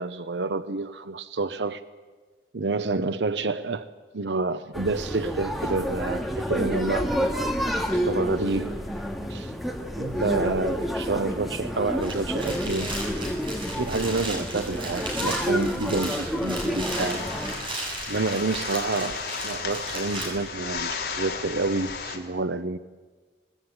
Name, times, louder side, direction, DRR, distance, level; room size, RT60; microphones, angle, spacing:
voice 1, 0.0-1.8 2.5-3.9 4.1-7.3 7.9-8.8 9.3-9.5 10.0-12.9 13.7-17.3 18.1-22.8, right 3 dB, 90° right, 0.8 m, -28 dB
sound 1, 4.7-17.5, equal, ahead, 2.3 m, -29 dB
sound 2, 12.0-20.3, right 1 dB, 30° right, 7.6 m, -35 dB
sound 3, 16.9-22.2, left 5 dB, 60° left, 3.7 m, -34 dB
24.5 x 20.0 x 9.8 m
head